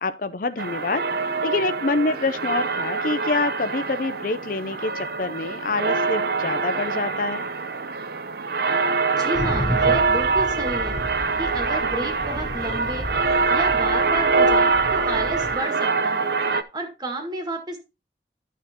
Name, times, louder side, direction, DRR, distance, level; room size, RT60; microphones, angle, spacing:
voice 1, 0.0-7.4, left 3 dB, 50° left, 0.6 m, -26 dB
sound 1, 0.6-16.6, right 4 dB, 60° right, 0.6 m, -24 dB
voice 2, 9.1-11.0 11.4-13.1 13.5-16.3 16.7-17.8, right 1 dB, 25° right, 1.9 m, -31 dB
sound 2, 9.3-15.6, equal, 25° left, 2.4 m, -33 dB
12.0 x 6.5 x 2.9 m
head